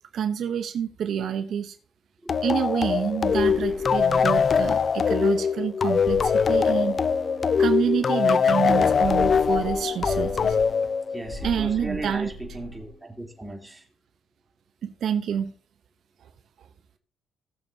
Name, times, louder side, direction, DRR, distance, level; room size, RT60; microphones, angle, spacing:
voice 1, 0.1-1.8 2.4-7.0 7.6-10.6 11.4-12.3 14.8-15.5, right 8 dB, 65° right, 0.8 m, -28 dB
sound 1, 2.3-11.5, left 6 dB, 45° left, 0.4 m, -22 dB
sound 2, 3.1-5.0 5.9-7.4 8.8-10.9 11.2-12.9, equal, 15° left, 3.5 m, -39 dB
sound 3, 6.6-13.7, right 3 dB, 50° right, 4.1 m, -48 dB
voice 2, 11.1-13.9, right 2 dB, 10° right, 3.3 m, -36 dB
17.5 x 7.0 x 2.8 m
cardioid pair, 90°, 0 cm